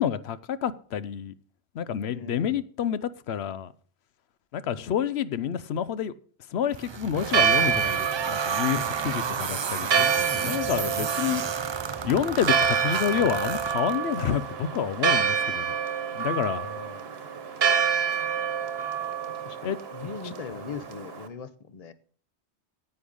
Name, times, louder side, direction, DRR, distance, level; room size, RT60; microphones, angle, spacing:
voice 1, 0.0-1.3 1.7-3.7 4.5-6.1 6.5-10.1 10.3-11.4 12.0-15.7 16.1-16.7 19.6-19.8 20.0-20.1, left 9 dB, 75° left, 0.9 m, -28 dB
voice 2, 2.1-2.7 9.2-9.3 16.6-17.1 19.4-21.9, left 5 dB, 40° left, 0.7 m, -40 dB
sound 1, 6.7-14.3, right 6 dB, 45° right, 0.3 m, -32 dB
Church bell, 7.2-21.3, right 7 dB, 65° right, 1.3 m, -27 dB
9.7 x 8.7 x 5.3 m
omnidirectional pair, 1.1 m